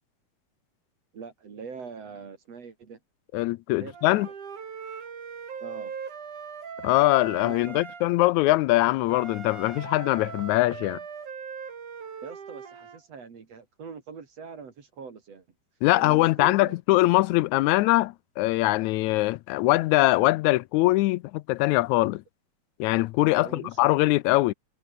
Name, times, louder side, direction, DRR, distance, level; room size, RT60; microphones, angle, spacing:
voice 1, 1.1-3.0 3.8-4.3 5.6-6.0 7.4-7.8 12.2-15.5 15.9-16.8 23.4-23.8, right 5 dB, 60° right, 3.8 m, -42 dB
voice 2, 3.3-4.3 6.8-11.0 15.8-22.2 22.8-24.5, left 19 dB, 80° left, 1.9 m, -22 dB
Wind instrument woodwind instrument, 3.9-8.1 9.1-13.0, right 6 dB, 90° right, 4.9 m, -40 dB
omnidirectional pair, 3.4 m